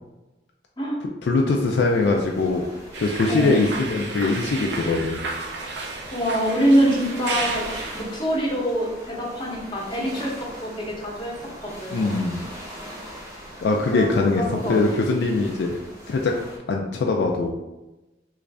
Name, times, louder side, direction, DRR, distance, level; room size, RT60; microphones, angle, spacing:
voice 1, 1.2-2.6 3.0-5.2 11.9-12.4 13.6-15.8 16.1-16.4 16.7-17.6, left 3 dB, 65° left, 1 dB, 0.3 m, -22 dB
sound 1, 1.6-16.6, equal, 15° right, 0.8 m, -41 dB
sound 2, 2.9-8.0, right 3 dB, 65° right, 0.5 m, -32 dB
voice 2, 3.3-3.6 6.1-7.7 7.9-10.3 10.6-11.3 11.6-12.1 13.9-14.8, equal, 25° left, -3 dB, 0.8 m, -24 dB
3.1 x 2.5 x 3.3 m, 1.0 s
head